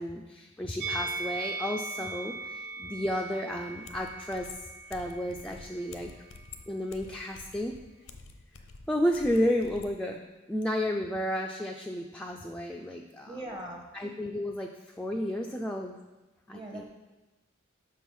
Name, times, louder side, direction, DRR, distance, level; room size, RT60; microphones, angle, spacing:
voice 1, 0.0-4.5 4.9-6.1 6.7-7.7 8.9-10.2 10.5-13.4 13.9-16.0 16.5-16.8, equal, 5° left, 0 dB, 0.3 m, -32 dB
Musical instrument, 0.8-6.0 6.3-6.5, right 3 dB, 55° right, 0.5 m, -39 dB
sound 1, 3.8-10.0, left 4 dB, 75° left, 0.6 m, -49 dB
voice 2, 13.3-13.8 16.5-16.8, right 1 dB, 25° right, 1 dB, 0.7 m, -40 dB
6.1 x 4.7 x 5.3 m, 1.1 s
head